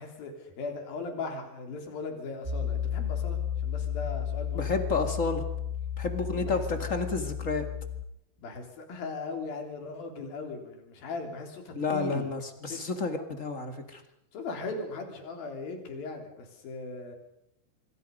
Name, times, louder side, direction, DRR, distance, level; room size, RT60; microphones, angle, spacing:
voice 1, 0.0-4.7 6.3-6.6 8.4-12.3 12.7-12.8 14.3-17.2, left 3 dB, 65° left, 4 dB, 5.4 m, -38 dB
Piano, 2.4-8.0, left 9 dB, 60° right, 0.5 m, -33 dB
voice 2, 4.5-5.4 6.0-7.7 11.7-14.0, left 3 dB, 30° left, 6 dB, 1.5 m, -30 dB
26.0 x 24.0 x 5.4 m, 0.79 s
omnidirectional pair, 4.5 m